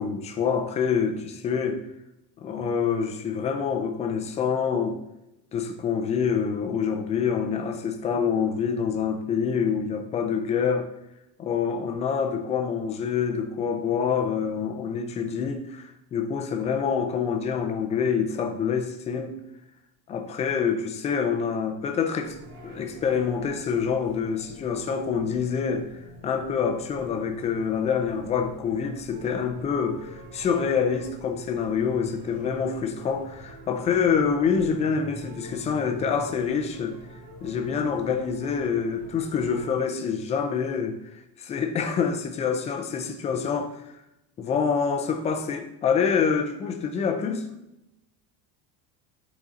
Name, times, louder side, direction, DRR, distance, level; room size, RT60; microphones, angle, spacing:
voice 1, 0.0-1.8 2.4-5.0 5.5-10.9 11.4-19.4 20.1-22.4 22.6-37.0 37.4-43.8 44.4-47.5, left 6 dB, 15° left, 0.3 m, -26 dB
sound 1, 22.2-39.7, right 2 dB, 90° right, 2.2 m, -45 dB
10.5 x 4.1 x 3.7 m
cardioid pair, 175°, 45 cm